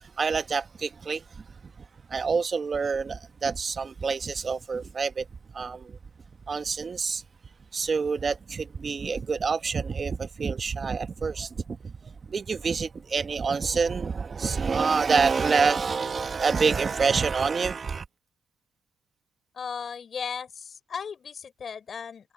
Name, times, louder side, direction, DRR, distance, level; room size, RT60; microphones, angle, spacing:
voice 1, 0.0-1.4 2.1-5.3 5.5-6.0 6.5-7.2 7.7-18.0, right 5 dB, 40° right, 1.1 m, -27 dB
voice 2, 19.5-22.3, left 6 dB, 50° left, 3.4 m, -36 dB
cardioid pair, 90°, 0 cm